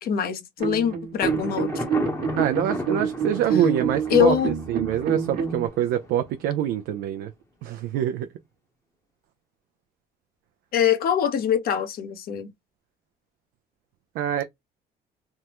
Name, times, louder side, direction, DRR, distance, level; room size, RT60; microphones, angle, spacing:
voice 1, 0.0-1.8 4.1-4.5 10.7-12.5, left 8 dB, 60° left, 0.9 m, -23 dB
sound 1, 0.6-5.7, right 6 dB, 65° right, 1.1 m, -27 dB
Thunder, 1.2-6.9, left 2 dB, 15° left, 0.8 m, -36 dB
voice 2, 2.4-4.4 4.7-7.3 7.6-8.3 14.2-14.4, right 11 dB, 85° right, 0.5 m, -25 dB
3.5 x 2.0 x 2.9 m
cardioid pair, 110°, 17 cm